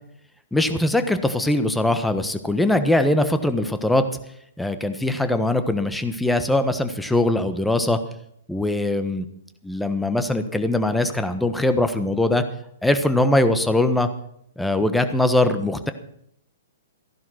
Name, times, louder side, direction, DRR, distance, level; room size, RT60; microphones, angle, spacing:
voice 1, 0.5-4.1 4.6-8.0 8.5-9.2 9.6-12.4 12.8-14.1 14.6-15.9, left 1 dB, 5° left, 9 dB, 1.3 m, -21 dB
15.5 x 11.0 x 6.1 m, 0.72 s
figure-of-eight pair, 120°, 0 cm